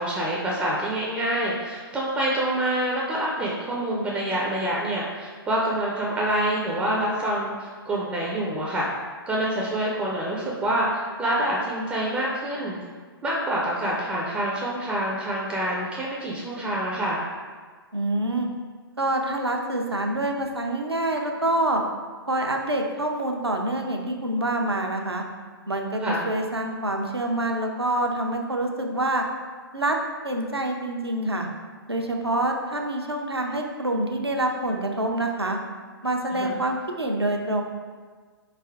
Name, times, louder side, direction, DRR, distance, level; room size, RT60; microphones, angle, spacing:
voice 1, 0.0-8.9 9.3-12.8 13.2-17.2 26.0-26.2 36.3-36.6, right 1 dB, 10° right, -4 dB, 0.4 m, -26 dB
voice 2, 17.9-18.5 19.0-21.8 22.3-25.2 25.7-29.2 29.7-30.0 30.2-31.5 31.9-35.6 36.0-37.6, right 1 dB, 85° right, 2 dB, 0.6 m, -26 dB
4.2 x 3.4 x 3.4 m, 1.5 s
figure-of-eight pair, 120°, 13 cm